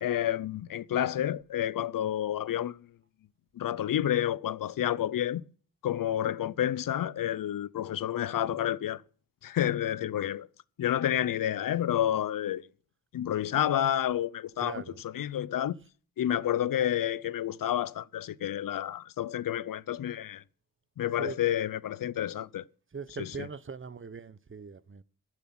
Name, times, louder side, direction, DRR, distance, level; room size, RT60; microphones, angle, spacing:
voice 1, 0.0-2.9 3.6-5.4 5.8-9.0 9.4-10.5 10.8-12.6 13.1-15.8 16.2-20.4 21.0-22.6 23.2-23.5, left 11 dB, 75° left, 0.6 m, -30 dB
voice 2, 14.6-15.0 21.2-21.4 22.9-25.0, right 5 dB, 35° right, 1.0 m, -40 dB
15.5 x 7.5 x 5.9 m
cardioid pair, 65°, 34 cm